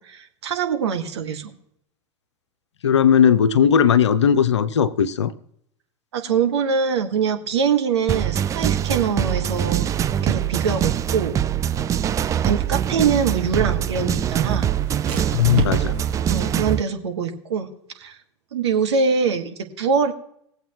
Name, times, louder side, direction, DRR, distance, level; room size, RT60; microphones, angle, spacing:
voice 1, 0.0-1.5 6.1-9.9 10.2-11.3 12.4-14.7 16.3-17.7 18.0-18.2 18.5-20.1, right 6 dB, 65° right, 5 dB, 1.3 m, -23 dB
voice 2, 2.8-5.3 15.3-16.0, left 8 dB, 70° left, 14 dB, 0.6 m, -17 dB
sound 1, 8.1-16.8, right 10 dB, 20° right, 0.4 m, -23 dB
sound 2, 10.0-16.4, right 5 dB, 45° right, 1.8 m, -34 dB
19.5 x 7.9 x 2.9 m, 0.71 s
figure-of-eight pair, 80°, 15 cm